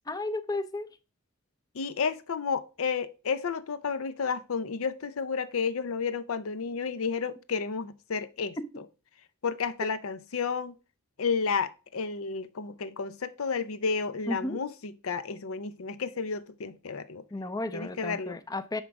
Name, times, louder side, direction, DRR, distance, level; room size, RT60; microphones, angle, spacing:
voice 1, 0.1-0.9 8.6-8.7 14.3-14.6 17.3-18.8, left 2 dB, 15° left, 0.5 m, -33 dB
voice 2, 1.7-8.6 9.4-10.7 11.2-17.2 17.7-18.4, left 5 dB, 75° left, 0.6 m, -31 dB
9.9 x 3.8 x 4.7 m
head